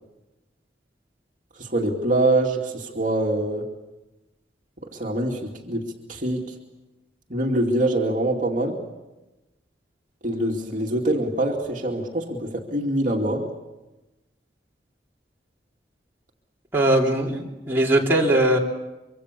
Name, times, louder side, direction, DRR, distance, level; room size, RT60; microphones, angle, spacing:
voice 1, 1.6-3.6 4.9-5.8 6.1-6.5 7.3-8.8 10.2-13.4, right 1 dB, 45° right, 0 dB, 2.5 m, -24 dB
voice 2, 16.7-18.6, right 1 dB, 15° right, -3 dB, 3.1 m, -20 dB
25.0 x 24.5 x 6.9 m, 1.1 s
head